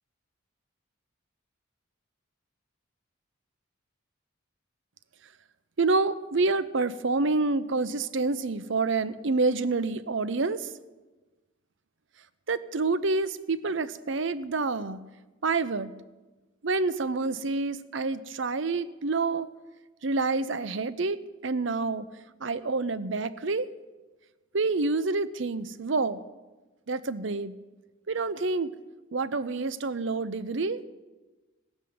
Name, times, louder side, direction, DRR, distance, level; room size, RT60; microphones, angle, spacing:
voice 1, 5.8-10.7 12.5-15.0 15.4-15.9 16.6-19.5 20.0-22.1 22.4-23.7 24.5-26.2 26.9-27.5 28.1-28.7 29.1-30.8, right 3 dB, 60° right, 14 dB, 0.7 m, -28 dB
17.0 x 7.3 x 9.4 m, 1.2 s
head